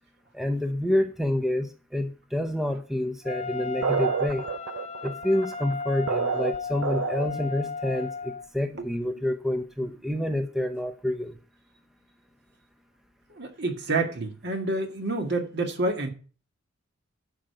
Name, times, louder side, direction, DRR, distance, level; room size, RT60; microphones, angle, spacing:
voice 1, 0.3-4.4 5.0-11.3, left 1 dB, ahead, 0.7 m, -28 dB
Wind instrument woodwind instrument, 3.2-8.5, left 5 dB, 30° left, 0.6 m, -35 dB
sound 1, 3.8-7.5, right 7 dB, 75° right, 0.4 m, -29 dB
voice 2, 13.3-16.1, right 2 dB, 50° right, 2.0 m, -28 dB
11.5 x 5.0 x 7.8 m
head